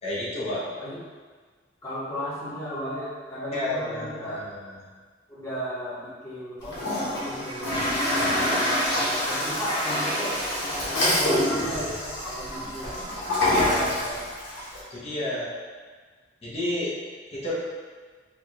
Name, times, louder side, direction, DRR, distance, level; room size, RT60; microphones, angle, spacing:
voice 1, 0.0-0.7 3.5-4.8 10.9-11.4 13.4-14.2 14.9-15.5 16.4-16.9 17.3-17.5, left 1 dB, 35° left, -8 dB, 1.0 m, -30 dB
voice 2, 1.8-4.4 5.3-10.4 10.9-11.8 12.2-12.9, equal, 15° left, -11 dB, 1.4 m, -35 dB
Toilet flush, 6.6-14.8, left 1 dB, 70° left, 1.3 m, -26 dB
4.9 x 2.5 x 3.0 m, 1.5 s
head